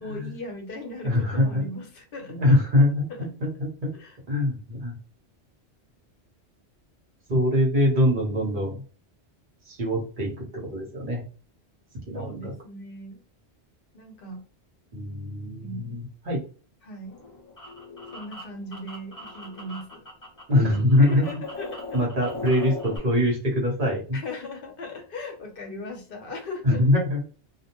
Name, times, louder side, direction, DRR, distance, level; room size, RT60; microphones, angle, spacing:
voice 1, 0.0-2.6 3.1-3.3 3.9-4.2 12.1-13.2 13.9-14.4 15.6-16.0 16.8-17.2 18.1-20.1 20.5-20.6 21.0-22.1 24.1-26.8, left 2 dB, 55° left, 2 dB, 0.9 m, -38 dB
voice 2, 1.0-1.6 2.3-3.9 4.3-4.9 7.3-8.8 9.7-10.3 10.7-11.2 12.1-12.5 14.9-16.4 20.5-21.4 21.9-24.2 26.6-27.2, left 1 dB, 50° right, -2 dB, 1.1 m, -23 dB
sound 1, 17.0-20.4 20.7-23.0, left 2 dB, 20° left, 0.8 m, -39 dB
2.5 x 2.1 x 2.8 m, 0.38 s
omnidirectional pair, 1.1 m